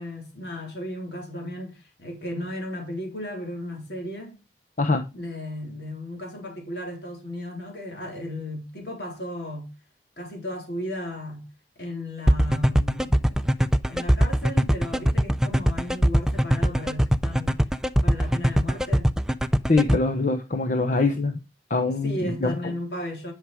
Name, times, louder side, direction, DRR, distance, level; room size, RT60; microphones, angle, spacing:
voice 1, 0.0-4.4 5.1-9.7 10.2-11.5 11.8-17.6 18.0-19.1 21.9-23.3, left 1 dB, 70° left, 4.0 m, -35 dB
sound 1, 12.3-20.0, equal, 5° right, 0.4 m, -20 dB
voice 2, 19.7-21.4 21.7-22.7, left 3 dB, 45° left, 0.9 m, -23 dB
10.5 x 6.4 x 4.9 m
head